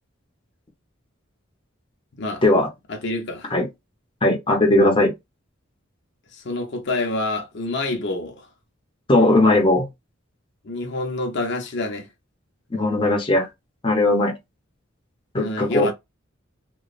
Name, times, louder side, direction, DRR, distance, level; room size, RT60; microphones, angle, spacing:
voice 1, 2.1-2.4 2.9-3.5 6.3-8.5 10.6-12.1 15.4-15.9, left 2 dB, 60° left, 0.7 m, -27 dB
voice 2, 4.2-5.1 9.1-9.9 12.7-13.5 13.8-14.3 15.3-15.9, left 2 dB, 25° left, 0.7 m, -18 dB
3.0 x 2.2 x 2.4 m
head